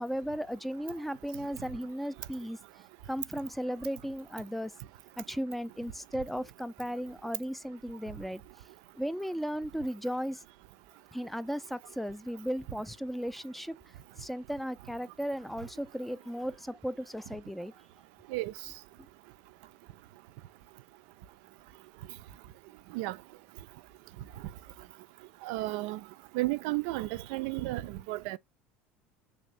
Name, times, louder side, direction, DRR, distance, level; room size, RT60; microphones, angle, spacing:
voice 1, 0.0-2.6 3.1-4.7 5.2-8.4 8.9-10.4 11.1-13.8 14.2-17.7, equal, ahead, 0.3 m, -36 dB
voice 2, 25.4-26.0 26.3-28.4, right 19 dB, 70° right, 0.3 m, -33 dB
3.3 x 2.7 x 3.2 m
hypercardioid pair, 85°, 5 cm